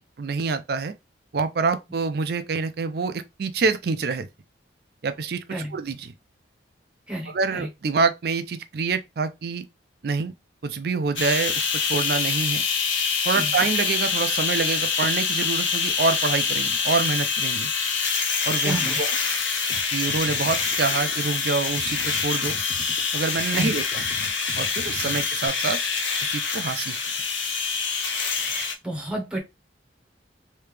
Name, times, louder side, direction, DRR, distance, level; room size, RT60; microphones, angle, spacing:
voice 1, 0.2-0.9 1.3-4.3 5.0-6.1 7.3-9.7 10.0-10.3 10.6-12.6 13.2-17.7 18.5-19.2 19.9-22.6 23.1-24.0 24.6-25.8 26.2-27.0, right 4 dB, 55° right, 0.4 m, -26 dB
voice 2, 7.1-7.7 13.3-13.5 18.6-19.0 23.5-23.7 25.1-25.2 28.4-29.4, right 1 dB, 5° right, 0.9 m, -32 dB
sound 1, 11.2-28.7, left 5 dB, 85° left, 0.7 m, -25 dB
sound 2, 19.7-19.8 20.1-25.5, left 2 dB, 40° left, 0.6 m, -40 dB
3.3 x 2.8 x 3.2 m
head